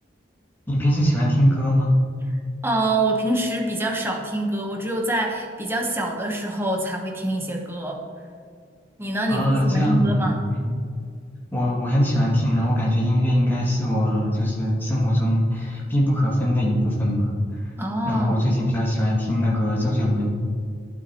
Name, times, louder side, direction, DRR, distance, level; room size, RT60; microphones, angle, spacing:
voice 1, 0.7-1.9 9.3-10.2 10.5-10.7 11.5-17.7 18.0-20.3, equal, 10° left, -6 dB, 2.2 m, -21 dB
voice 2, 2.6-8.0 9.0-10.4 17.8-18.5, right 1 dB, 15° right, 0 dB, 1.0 m, -25 dB
11.5 x 8.3 x 3.0 m, 2.2 s
head